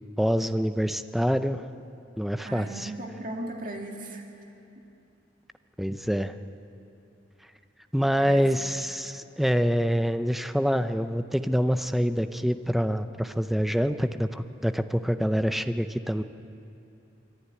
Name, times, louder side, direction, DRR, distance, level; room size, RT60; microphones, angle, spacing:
voice 1, 0.2-1.6 2.2-2.9 5.8-6.3 7.9-16.2, equal, ahead, 10 dB, 0.5 m, -26 dB
voice 2, 2.4-4.2 8.2-8.8, right 1 dB, 45° right, 1 dB, 2.1 m, -37 dB
26.0 x 11.5 x 9.5 m, 2.8 s
head